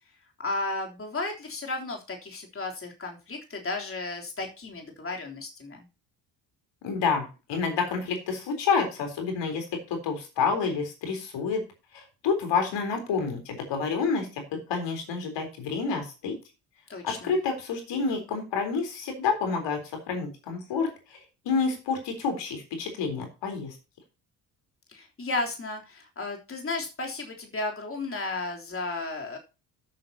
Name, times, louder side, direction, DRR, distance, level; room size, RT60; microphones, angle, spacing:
voice 1, 0.4-5.8 16.9-17.3 24.9-29.4, left 2 dB, 25° left, 1 dB, 3.4 m, -34 dB
voice 2, 6.8-11.6 11.9-16.3 17.0-19.8 20.1-23.7, left 5 dB, 60° left, 5 dB, 4.0 m, -29 dB
13.5 x 8.6 x 2.9 m, 0.31 s
figure-of-eight pair, 50°, 48 cm